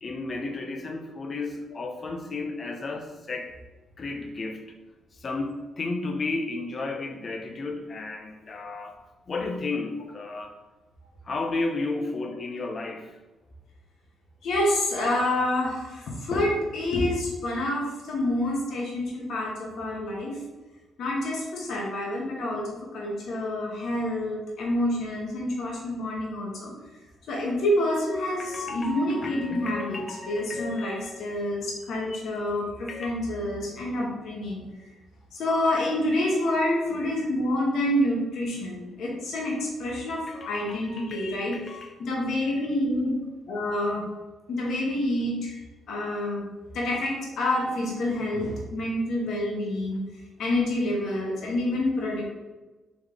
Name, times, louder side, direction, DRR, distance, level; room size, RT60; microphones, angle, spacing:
voice 1, 0.0-3.5 4.0-4.7 5.1-9.0 9.3-10.5 11.2-13.2 28.4-31.3 32.1-32.2 32.9-33.2 40.3-41.9, left 3 dB, 40° left, 4 dB, 0.6 m, -33 dB
voice 2, 14.4-20.4 21.0-26.7 27.3-34.6 35.3-41.6 42.0-43.2 43.5-44.0 44.5-45.6 45.9-46.5 46.7-50.0 50.4-52.3, left 1 dB, 70° left, -2 dB, 1.0 m, -28 dB
3.6 x 3.1 x 3.7 m, 1.2 s
cardioid pair, 90°, 0 cm